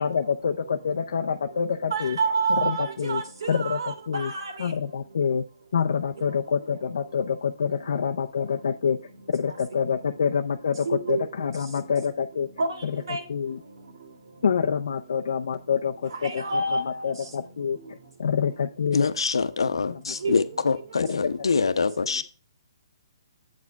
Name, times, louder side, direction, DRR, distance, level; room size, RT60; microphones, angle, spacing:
voice 1, 0.0-2.2 2.6-3.2 3.5-4.3 4.6-5.4 5.7-9.0 9.3-12.5 12.8-13.0 13.3-13.6 14.4-17.8 18.2-19.1 20.1-20.4 21.0-21.3, left 6 dB, 65° left, 0.6 m, -27 dB
voice 2, 1.9-4.7 6.2-6.3 9.5-9.6 10.8-11.3 12.6-13.2 16.1-17.1 20.1-20.6, right 3 dB, 65° right, 2.2 m, -29 dB
voice 3, 18.9-22.2, left 4 dB, 85° left, 0.9 m, -25 dB
8.3 x 5.1 x 4.6 m
hypercardioid pair, 165°, 3 cm